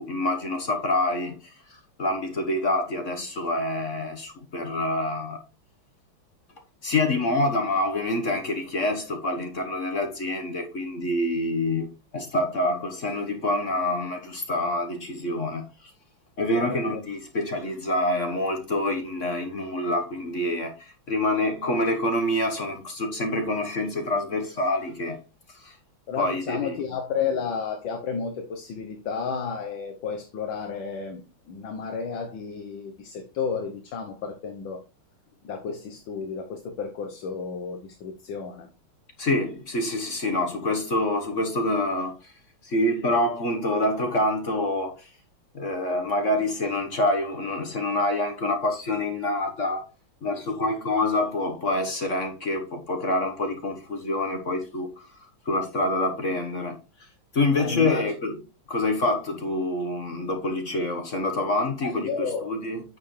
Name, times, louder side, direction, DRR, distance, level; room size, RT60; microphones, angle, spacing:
voice 1, 0.0-1.4 1.7-5.4 6.8-11.9 12.1-15.7 16.4-25.2 25.5-25.7 26.2-26.8 39.2-42.3 42.6-45.1 45.5-49.8 50.2-55.1 55.4-56.8 57.3-58.3 58.7-62.8, left 1 dB, 40° left, 1.5 m, -26 dB
voice 2, 16.5-17.0 26.1-34.8 35.4-38.7 57.6-58.1 61.8-62.5, left 6 dB, 70° left, 1.8 m, -32 dB
9.2 x 6.8 x 3.3 m
omnidirectional pair, 2.3 m